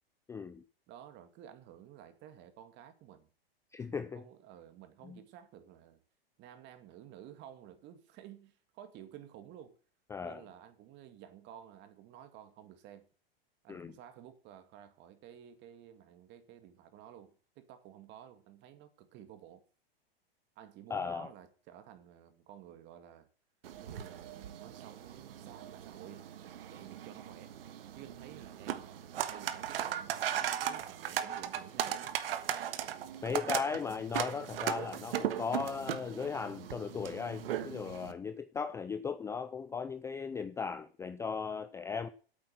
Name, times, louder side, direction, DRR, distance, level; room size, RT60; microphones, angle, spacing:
voice 1, 0.3-0.6 3.7-4.2 5.0-5.2 10.1-10.4 13.7-13.9 20.9-21.3 33.2-42.1, left 5 dB, 10° left, 0.4 m, -37 dB
voice 2, 0.9-3.3 3.9-6.0 6.4-9.8 10.2-13.1 13.6-19.6 20.6-23.3 23.8-26.2 26.7-27.5 28.0-32.1, right 10 dB, 35° right, 2.1 m, -53 dB
sound 1, 23.6-38.1, right 10 dB, 70° right, 1.4 m, -38 dB
8.6 x 8.4 x 7.7 m
hypercardioid pair, 120°, 30 cm